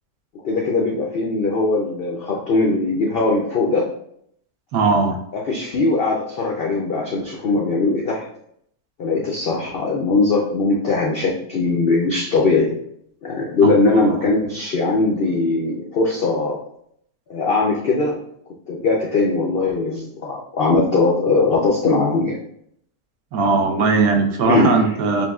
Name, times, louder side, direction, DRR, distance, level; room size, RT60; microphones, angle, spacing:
voice 1, 0.4-3.9 5.3-8.2 9.0-12.7 13.2-16.6 17.3-18.2 18.7-22.4 24.4-25.0, left 3 dB, 70° left, -2 dB, 0.5 m, -20 dB
voice 2, 4.7-5.2 13.6-14.1 23.3-25.3, right 4 dB, 70° right, 3 dB, 1.1 m, -19 dB
6.9 x 2.5 x 2.3 m, 0.71 s
omnidirectional pair, 1.6 m